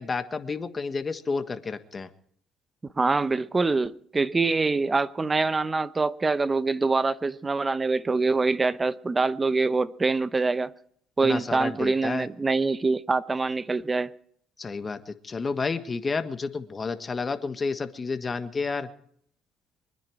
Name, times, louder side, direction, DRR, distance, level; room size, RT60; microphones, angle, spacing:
voice 1, 0.0-2.1 11.2-12.2 14.6-18.9, left 4 dB, 30° left, 1.5 m, -30 dB
voice 2, 3.0-10.7 11.2-14.1, right 3 dB, 20° right, 0.8 m, -25 dB
24.5 x 10.0 x 4.7 m
cardioid pair, 95°, 0 cm